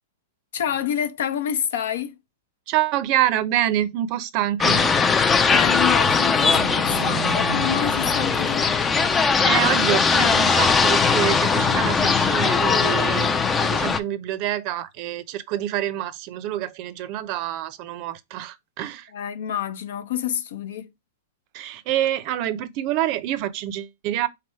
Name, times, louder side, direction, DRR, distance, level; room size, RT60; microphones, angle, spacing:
voice 1, 0.5-2.1 5.5-8.7 19.1-20.9, left 10 dB, 70° left, 0.8 m, -28 dB
voice 2, 2.7-5.0 9.4-13.3 13.6-19.1 21.5-24.3, right 12 dB, 40° right, 0.6 m, -26 dB
sound 1, 4.6-14.0, left 5 dB, 15° left, 0.4 m, -20 dB
sound 2, 6.3-9.3, right 5 dB, 85° right, 0.7 m, -34 dB
3.5 x 3.4 x 4.5 m
hypercardioid pair, 145°, 0 cm